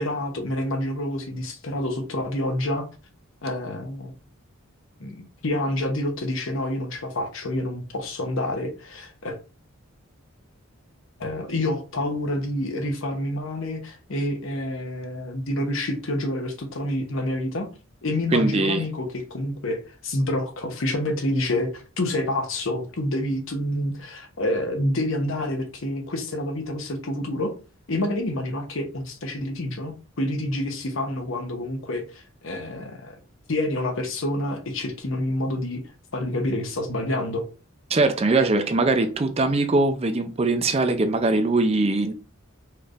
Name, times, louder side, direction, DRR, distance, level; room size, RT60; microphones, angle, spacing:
voice 1, 0.0-2.9 3.4-4.1 5.0-9.4 11.2-17.7 18.0-27.5 27.9-33.2 33.5-35.8 36.1-37.5, left 1 dB, 65° left, 0.9 m, -28 dB
voice 2, 18.3-18.8 37.9-42.1, right 2 dB, 30° right, 0.4 m, -21 dB
4.4 x 3.2 x 2.4 m
head